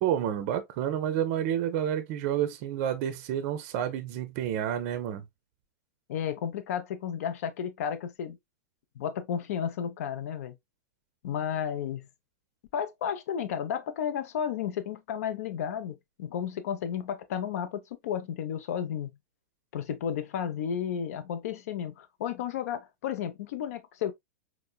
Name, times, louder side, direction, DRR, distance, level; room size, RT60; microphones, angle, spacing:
voice 1, 0.0-5.2, right 10 dB, 50° right, 0.5 m, -29 dB
voice 2, 6.1-8.4 9.0-10.6 11.2-12.1 12.7-19.1 19.7-24.1, left 8 dB, 60° left, 0.6 m, -33 dB
4.3 x 2.1 x 2.3 m
hypercardioid pair, 105°, 9 cm